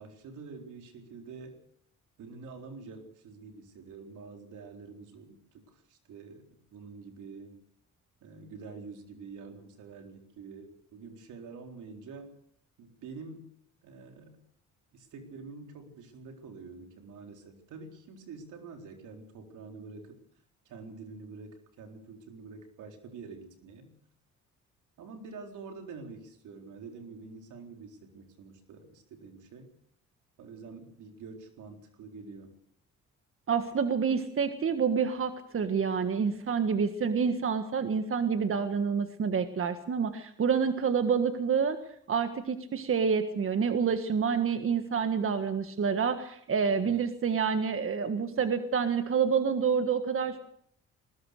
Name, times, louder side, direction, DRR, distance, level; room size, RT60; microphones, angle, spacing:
voice 1, 0.0-1.6 2.2-6.4 6.7-7.6 8.2-12.3 12.8-13.5 13.8-14.4 14.9-20.2 20.7-23.9 25.0-29.7 30.4-32.6 46.6-47.0, right 4 dB, 80° right, 4 dB, 4.2 m, -47 dB
voice 2, 33.5-41.8 42.1-50.4, right 6 dB, 45° right, 8 dB, 1.7 m, -28 dB
20.5 x 20.0 x 6.7 m, 0.65 s
cardioid pair, 90°, 30 cm